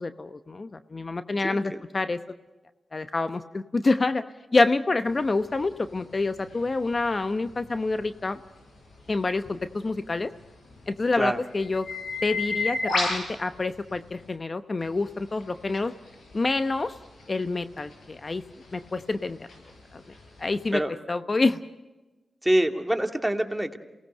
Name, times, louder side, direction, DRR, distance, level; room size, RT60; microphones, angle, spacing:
voice 1, 0.0-2.2 2.9-4.2 4.5-8.4 9.1-10.3 10.9-11.9 12.2-15.9 16.3-17.0 17.3-18.4 18.7-19.5 19.9-20.0 20.4-21.6, left 3 dB, 45° left, 11 dB, 0.8 m, -27 dB
voice 2, 1.4-1.8 11.1-11.4 20.7-20.9 22.4-23.8, right 1 dB, 10° right, 5 dB, 2.3 m, -25 dB
sound 1, 5.1-14.3 14.8-20.7, left 3 dB, 80° left, 7.3 m, -36 dB
28.0 x 18.5 x 6.6 m, 1.1 s
cardioid pair, 50°, 0 cm